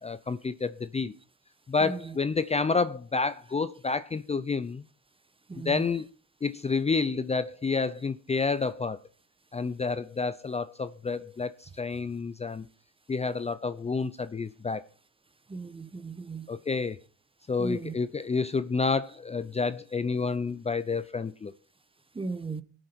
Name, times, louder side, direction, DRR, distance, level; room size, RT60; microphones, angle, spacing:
voice 1, 0.0-1.1 1.7-4.8 5.6-6.1 6.4-9.0 9.5-12.7 13.1-14.9 16.5-17.0 17.5-21.5, left 4 dB, 20° left, 0.5 m, -29 dB
voice 2, 5.5-5.8 15.5-16.5 17.6-17.9 22.1-22.6, right 4 dB, 20° right, 0.9 m, -36 dB
18.5 x 6.6 x 4.4 m
cardioid pair, 90°, 30 cm